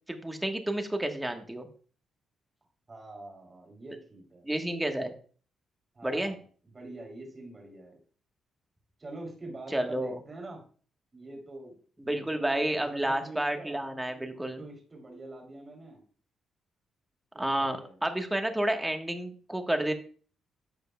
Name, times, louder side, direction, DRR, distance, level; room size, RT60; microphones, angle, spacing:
voice 1, 0.1-1.7 4.4-5.1 6.0-6.4 9.7-10.2 12.1-14.6 17.4-19.9, right 1 dB, 10° right, 5 dB, 1.3 m, -30 dB
voice 2, 2.9-4.4 5.9-6.4 6.7-8.0 9.0-10.6 11.1-11.7 12.0-13.8 14.6-16.0 17.3-18.0, right 2 dB, 25° right, 0 dB, 3.0 m, -45 dB
12.5 x 8.0 x 2.3 m, 0.42 s
cardioid pair, 110°, 0 cm